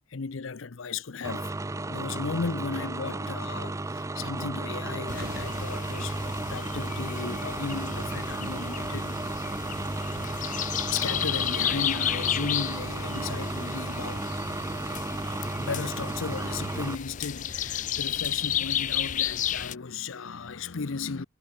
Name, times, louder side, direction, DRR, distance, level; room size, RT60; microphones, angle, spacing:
voice 1, 0.1-1.6 1.9-9.2 10.3-14.3 15.6-21.2, left 4 dB, 70° left, 0.7 m, -35 dB
sound 1, 1.2-17.0, right 2 dB, 15° right, 0.5 m, -33 dB
sound 2, 5.1-19.7, left 10 dB, 35° left, 0.4 m, -33 dB
Thunder, 5.1-19.1, right 1 dB, 50° right, 2.9 m, -51 dB
head